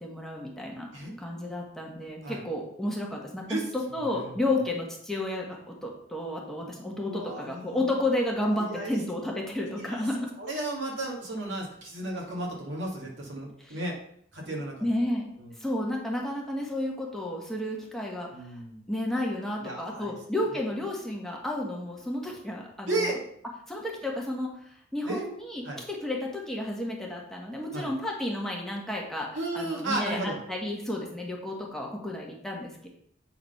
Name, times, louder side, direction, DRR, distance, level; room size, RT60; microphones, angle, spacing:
voice 1, 0.0-0.9 1.2-10.3 13.6-13.8 14.8-15.2 15.6-18.6 18.9-23.1 23.7-24.5 24.9-29.3 29.5-32.9, left 1 dB, ahead, -2 dB, 1.3 m, -32 dB
voice 2, 7.0-7.8 8.4-9.0 9.7-10.1 10.4-13.9 14.3-14.7 15.4-15.5 18.3-18.8 19.6-20.1 22.9-23.2 25.1-25.3 25.6-25.8 27.7-27.9 29.3-30.4, right 2 dB, 75° right, -2 dB, 2.1 m, -33 dB
7.9 x 3.9 x 5.6 m, 0.68 s
head